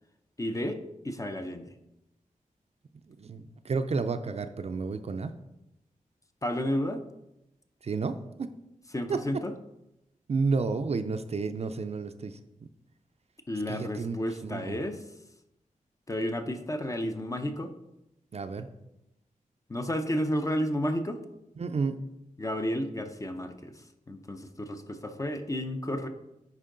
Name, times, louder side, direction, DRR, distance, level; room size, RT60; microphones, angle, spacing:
voice 1, 0.4-0.8 1.0-1.7 6.4-7.0 8.9-9.6 13.5-15.0 16.1-17.7 19.7-21.2 22.4-23.8 24.1-26.1, equal, 25° left, 7 dB, 0.6 m, -31 dB
voice 2, 3.2-5.3 7.8-8.5 9.1-9.2 10.3-12.4 13.7-14.2 14.4-14.8 18.3-18.7 21.6-22.0, right 4 dB, 50° right, 9 dB, 0.4 m, -31 dB
9.8 x 4.5 x 3.8 m, 0.90 s
wide cardioid pair, 140°, 14 cm